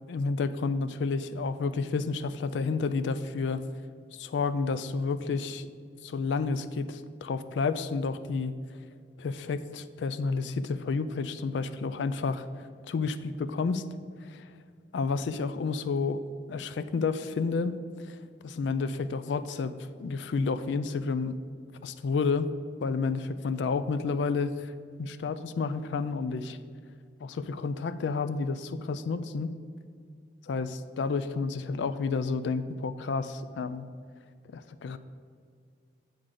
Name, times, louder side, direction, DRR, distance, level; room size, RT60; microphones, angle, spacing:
voice 1, 0.1-3.6 4.1-5.7 6.0-8.5 9.2-13.8 14.2-14.4 14.9-16.2 16.5-17.8 18.1-18.2 18.4-19.7 20.0-21.4 21.8-22.5 22.8-24.7 25.0-26.6 27.2-29.5 30.5-33.9 34.5-35.0, left 4 dB, 80° left, 13 dB, 0.3 m, -30 dB
7.7 x 3.7 x 6.5 m, 2.2 s
head